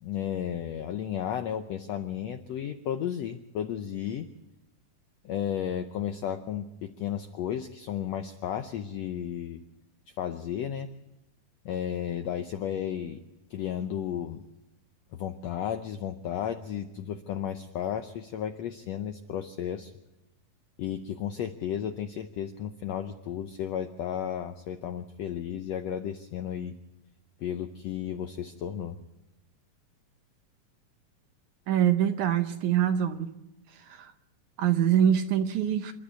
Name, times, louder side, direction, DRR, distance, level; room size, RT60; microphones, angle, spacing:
voice 1, 0.0-4.3 5.2-9.6 10.2-10.9 11.6-13.2 13.5-14.4 15.1-19.9 20.8-26.8 27.4-29.0, left 9 dB, 80° left, 8 dB, 1.5 m, -33 dB
voice 2, 31.7-33.3 33.9-34.1 34.6-35.9, right 9 dB, 70° right, 8 dB, 2.1 m, -24 dB
27.5 x 11.5 x 8.3 m, 0.95 s
omnidirectional pair, 4.0 m